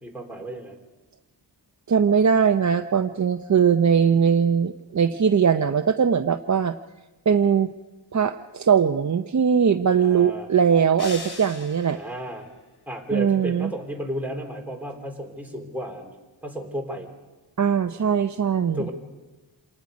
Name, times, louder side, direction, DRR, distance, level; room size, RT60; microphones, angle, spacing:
voice 1, 0.0-0.8 10.0-10.5 12.0-12.5 12.9-16.2 16.4-17.1 18.7-18.9, right 1 dB, 5° right, 0 dB, 3.5 m, -33 dB
voice 2, 1.9-6.7 7.3-7.7 8.1-12.0 13.1-13.7 17.6-18.8, right 7 dB, 40° right, 7 dB, 0.6 m, -20 dB
sound 1, 11.0-12.2, left 3 dB, 60° left, 2.6 m, -39 dB
27.0 x 19.0 x 5.2 m, 1.1 s
wide cardioid pair, 85°, 45 cm